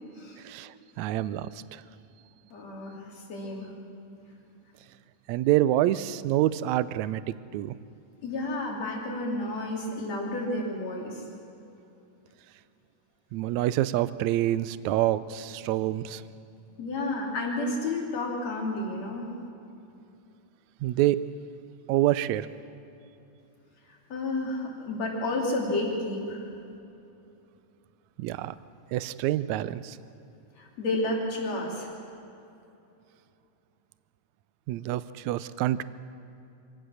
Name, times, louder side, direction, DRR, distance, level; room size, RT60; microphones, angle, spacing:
voice 1, 1.0-1.8 5.3-7.2 7.5-7.7 13.3-16.2 20.8-21.2 21.9-22.5 28.2-28.6 28.9-30.0 34.7-35.8, right 14 dB, 75° right, 15 dB, 1.8 m, -26 dB
voice 2, 2.5-3.7 8.2-11.2 16.8-19.3 24.1-26.4 30.6-32.0, left 2 dB, 60° left, -1 dB, 4.1 m, -31 dB
25.0 x 17.0 x 6.4 m, 2.8 s
omnidirectional pair, 3.6 m